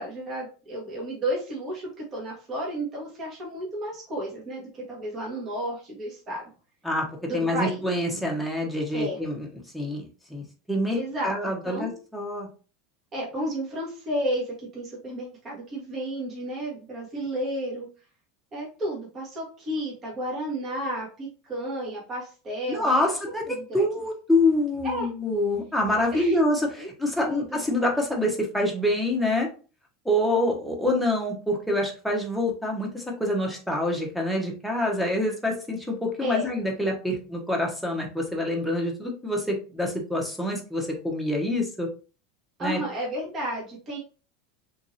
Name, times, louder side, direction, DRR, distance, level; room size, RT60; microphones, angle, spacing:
voice 1, 0.0-6.4 7.3-7.8 8.9-9.2 10.9-11.9 13.1-17.9 18.5-23.2 23.5-23.8 24.8-25.1 26.1-26.4 26.8-26.9 27.2-27.6 36.2-36.5 42.6-44.0, equal, 30° right, -4 dB, 1.1 m, -32 dB
voice 2, 7.3-9.5 9.7-11.0 11.2-12.5 22.7-29.5 30.0-41.9 42.6-42.8, left 1 dB, ahead, -1 dB, 0.9 m, -26 dB
3.1 x 2.6 x 2.6 m, 0.37 s
supercardioid pair, 125°, 0 cm